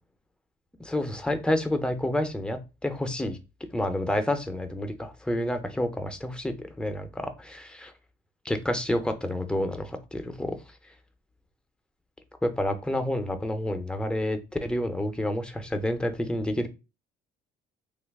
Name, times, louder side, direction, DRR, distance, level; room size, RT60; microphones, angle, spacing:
voice 1, 0.8-3.4 3.7-7.9 8.4-10.5 12.4-16.7, left 1 dB, 5° left, 7 dB, 0.5 m, -29 dB
2.8 x 2.3 x 3.4 m, 0.28 s
cardioid pair, 110°, 17 cm